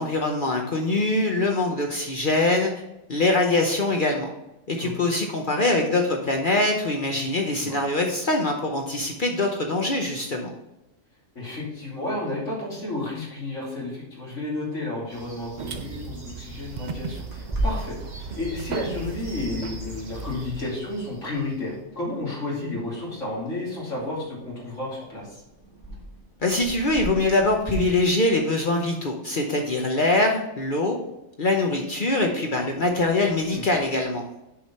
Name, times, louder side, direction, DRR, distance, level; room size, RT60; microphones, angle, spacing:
voice 1, 0.0-2.7 3.1-4.3 4.7-10.5 26.4-31.0 31.4-34.2, left 2 dB, 45° left, 2 dB, 0.9 m, -23 dB
voice 2, 11.3-25.3 33.5-33.6, left 2 dB, 70° left, -5 dB, 3.1 m, -32 dB
sound 1, 15.1-21.8, right 1 dB, 30° right, 1.8 m, -45 dB
sound 2, 15.6-20.6, right 4 dB, 55° right, 0.5 m, -36 dB
Clock, 17.3-27.7, right 1 dB, 15° right, 1.9 m, -38 dB
6.8 x 4.9 x 4.2 m, 0.92 s
omnidirectional pair, 1.3 m